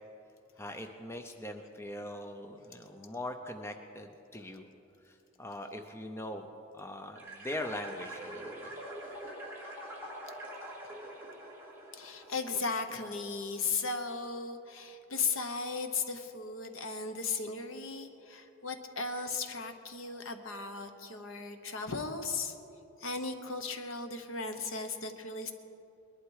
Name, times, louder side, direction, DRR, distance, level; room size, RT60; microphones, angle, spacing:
voice 1, 0.6-4.7 5.0-6.5 6.7-8.7, left 1 dB, 10° left, 5 dB, 0.6 m, -41 dB
sound 1, 7.2-12.9, right 1 dB, 10° right, 2.5 m, -45 dB
voice 2, 11.9-22.5 23.0-25.5, left 4 dB, 65° left, 7 dB, 1.1 m, -36 dB
21.0 x 11.5 x 4.8 m, 2.8 s
head